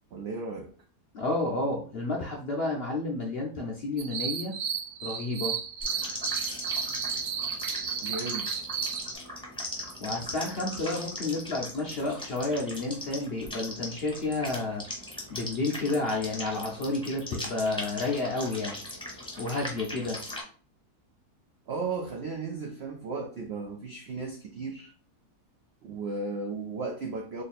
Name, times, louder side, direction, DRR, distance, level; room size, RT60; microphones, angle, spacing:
voice 1, 0.1-0.7 8.0-8.5 21.7-24.9 25.8-27.4, right 4 dB, 70° right, 1 dB, 0.6 m, -35 dB
voice 2, 1.1-4.5 5.0-5.6 10.0-14.8 15.3-18.8 19.4-20.2, left 2 dB, 60° left, -1 dB, 0.6 m, -31 dB
sound 1, 4.0-9.1, right 7 dB, 90° right, 1.2 m, -33 dB
sound 2, 5.8-20.4, left 1 dB, 5° left, 0.7 m, -39 dB
3.1 x 2.5 x 4.1 m, 0.41 s
omnidirectional pair, 1.7 m